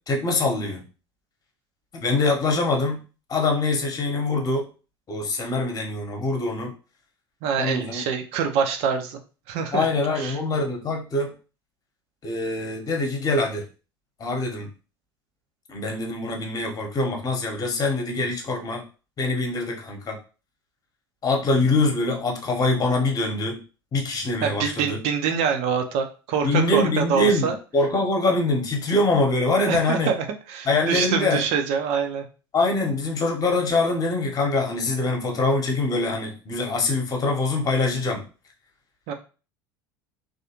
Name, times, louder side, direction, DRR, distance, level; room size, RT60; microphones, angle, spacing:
voice 1, 0.1-0.8 1.9-3.0 3.3-4.7 5.1-6.7 7.6-8.0 9.7-11.3 12.2-13.6 14.2-14.7 15.7-18.8 19.2-20.2 21.2-23.6 23.9-25.0 26.4-30.1 30.6-31.4 32.5-38.2, left 2 dB, 30° left, 2 dB, 1.0 m, -24 dB
voice 2, 7.4-9.2 9.5-9.9 10.2-10.4 24.4-27.6 29.6-32.2 39.1-39.2, right 7 dB, 50° right, 6 dB, 0.6 m, -25 dB
3.2 x 2.5 x 2.9 m, 0.35 s
figure-of-eight pair, 70°, 13 cm